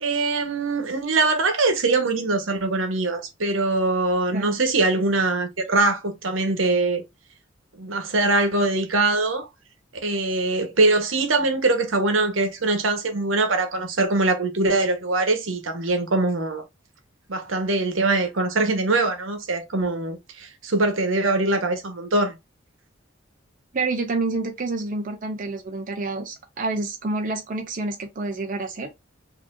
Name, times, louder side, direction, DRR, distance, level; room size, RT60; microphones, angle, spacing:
voice 1, 0.0-7.0 7.7-9.5 9.9-16.6 17.3-22.4, right 2 dB, 80° right, 1.1 m, -22 dB
voice 2, 23.7-28.9, right 3 dB, 45° right, 0.7 m, -28 dB
4.8 x 2.8 x 2.5 m
head